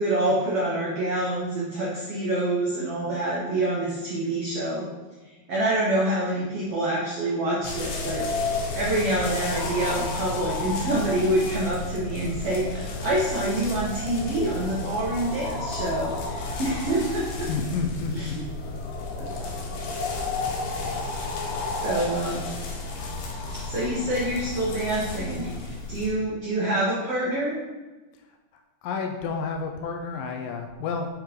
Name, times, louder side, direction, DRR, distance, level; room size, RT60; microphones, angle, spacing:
voice 1, 0.0-4.9 5.5-17.5 18.1-18.3 19.2-19.3 20.7-21.0 21.8-22.4 23.7-27.6, right 1 dB, 90° right, -5 dB, 1.3 m, -26 dB
sound 1, 7.6-26.1, left 3 dB, 65° left, 2.6 m, -32 dB
voice 2, 17.4-18.4 28.8-31.1, left 5 dB, 90° left, 4 dB, 2.0 m, -30 dB
9.5 x 3.7 x 5.0 m, 1.2 s
omnidirectional pair, 4.6 m